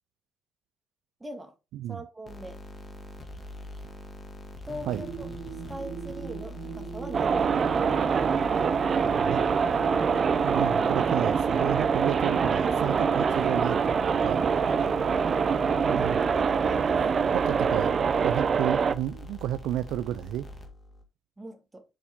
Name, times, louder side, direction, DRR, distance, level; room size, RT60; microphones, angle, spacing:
voice 1, 1.2-1.5 1.9-2.6 4.6-5.3 5.7-7.8 15.9-16.9 18.5-18.6 21.4-21.8, right 1 dB, 15° right, 1.7 m, -41 dB
sound 1, 2.3-21.0, left 1 dB, 35° left, 2.0 m, -43 dB
sound 2, 4.8-12.5, right 6 dB, 65° right, 1.3 m, -39 dB
sound 3, 7.1-18.9, right 6 dB, 45° right, 0.6 m, -24 dB
voice 2, 10.4-13.8 14.2-14.4 14.8-14.9 15.8-16.2 17.3-17.9 18.2-20.5, right 13 dB, 90° right, 0.3 m, -31 dB
7.3 x 5.2 x 3.5 m
cardioid pair, 90°, 0 cm